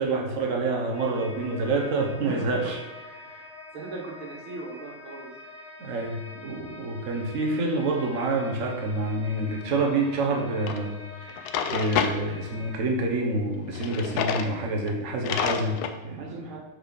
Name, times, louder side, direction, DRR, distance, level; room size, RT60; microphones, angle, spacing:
voice 1, 0.0-2.8 5.8-16.4, right 2 dB, 45° right, 1 dB, 1.1 m, -27 dB
sound 1, 0.9-12.8, left 3 dB, 60° left, 1.8 m, -45 dB
voice 2, 2.2-2.7 3.7-5.3 16.2-16.6, right 3 dB, 75° right, -2 dB, 2.3 m, -38 dB
Drawer open or close, 10.7-10.8 11.3-12.2 13.7-14.5 14.9-15.0 15.2-16.0, left 7 dB, 85° left, 0.8 m, -28 dB
6.4 x 4.7 x 5.2 m, 1.2 s
omnidirectional pair, 2.3 m